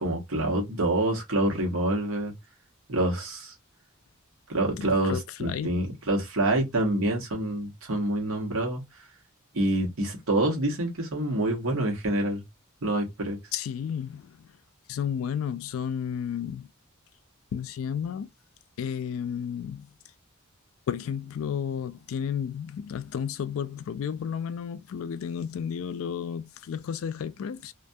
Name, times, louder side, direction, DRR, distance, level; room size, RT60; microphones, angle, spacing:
voice 1, 0.0-2.3 2.9-3.5 4.5-8.8 9.5-12.4 12.8-13.4, right 1 dB, 70° right, 1.1 m, -27 dB
voice 2, 4.8-5.8 13.5-14.5 14.9-16.7 17.5-18.3 18.8-19.9 20.9-27.7, left 8 dB, 65° left, 0.3 m, -32 dB
2.5 x 2.3 x 2.6 m
head